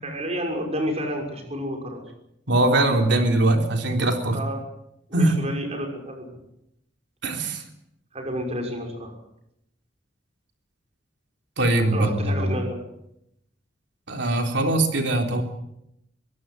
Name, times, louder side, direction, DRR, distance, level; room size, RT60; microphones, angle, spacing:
voice 1, 0.0-2.0 4.3-4.6 5.1-6.4 8.1-9.2 11.9-12.8, equal, 35° right, 2 dB, 6.2 m, -30 dB
voice 2, 2.5-4.4 5.1-5.4 7.2-7.6 11.6-12.6 14.1-15.4, right 2 dB, 70° right, 4 dB, 3.6 m, -21 dB
23.5 x 17.0 x 7.8 m, 0.81 s
head